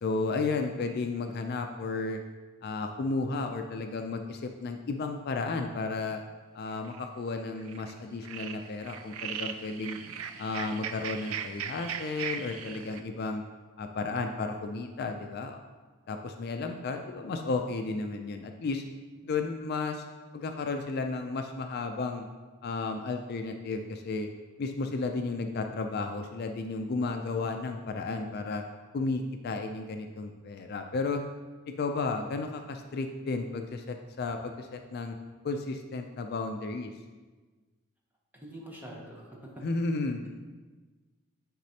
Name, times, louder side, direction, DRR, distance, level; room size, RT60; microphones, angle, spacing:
voice 1, 0.0-2.2 2.6-6.2 6.5-10.0 10.4-13.4 13.8-15.6 16.1-18.8 19.2-20.0 20.3-22.3 22.6-24.3 24.6-28.6 28.9-31.2 31.8-35.2 35.4-36.9 39.6-40.2, left 3 dB, 50° left, 5 dB, 0.4 m, -33 dB
sound 1, 6.7-7.1 7.6-7.9 8.2-13.0, right 8 dB, 85° right, 0.4 m, -38 dB
voice 2, 38.3-39.6, right 1 dB, 10° right, -2 dB, 1.0 m, -45 dB
9.4 x 4.1 x 2.8 m, 1.3 s
head